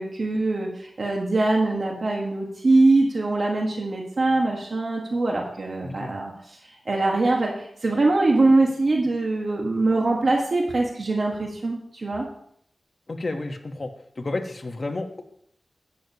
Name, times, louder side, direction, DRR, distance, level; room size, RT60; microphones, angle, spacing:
voice 1, 0.0-6.6 6.8-12.3, right 2 dB, 60° right, 0 dB, 1.6 m, -23 dB
voice 2, 5.8-6.2 13.1-13.9 14.1-15.2, left 2 dB, 50° left, 4 dB, 1.3 m, -31 dB
11.5 x 9.2 x 3.0 m, 0.68 s
wide cardioid pair, 80°, 0 cm